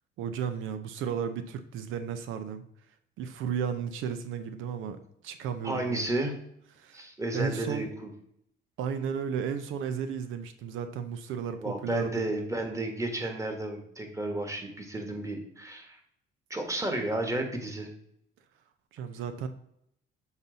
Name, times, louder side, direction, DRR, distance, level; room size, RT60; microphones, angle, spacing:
voice 1, 0.2-2.6 3.2-5.0 5.2-6.1 6.8-7.1 7.3-7.9 8.8-12.3 18.9-19.5, right 7 dB, 90° right, 10 dB, 0.5 m, -34 dB
voice 2, 5.6-6.3 6.9-8.1 11.6-16.0 16.5-17.9, right 1 dB, 15° right, 4 dB, 1.5 m, -32 dB
7.1 x 4.0 x 3.9 m, 0.74 s
cardioid pair, 90°, 20 cm